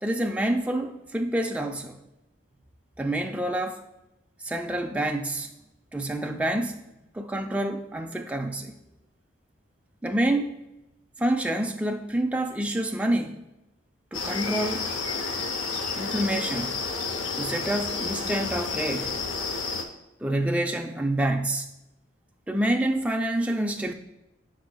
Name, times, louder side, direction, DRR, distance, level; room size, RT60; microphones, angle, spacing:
voice 1, 0.0-2.0 3.0-3.8 4.4-5.5 5.9-6.8 7.1-8.8 10.0-10.6 11.2-13.4 14.1-14.9 16.0-16.8 17.4-19.1 20.2-21.7 22.5-23.9, right 1 dB, 5° right, 3 dB, 0.4 m, -27 dB
sound 1, 14.1-19.8, left 4 dB, 90° left, 0.7 m, -30 dB
7.0 x 6.1 x 2.2 m, 0.92 s
head